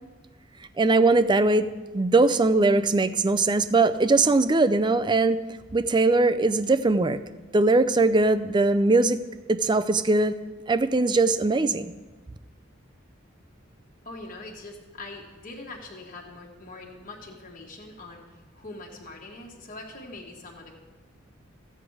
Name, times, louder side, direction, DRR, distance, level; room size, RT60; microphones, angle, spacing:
voice 1, 0.8-1.7 1.9-5.4 5.7-7.2 7.5-9.2 9.5-10.4 10.7-11.9, right 3 dB, 25° right, 11 dB, 0.4 m, -21 dB
voice 2, 14.0-20.7, left 2 dB, 40° left, -1 dB, 1.5 m, -43 dB
14.5 x 7.9 x 4.8 m, 1.3 s
head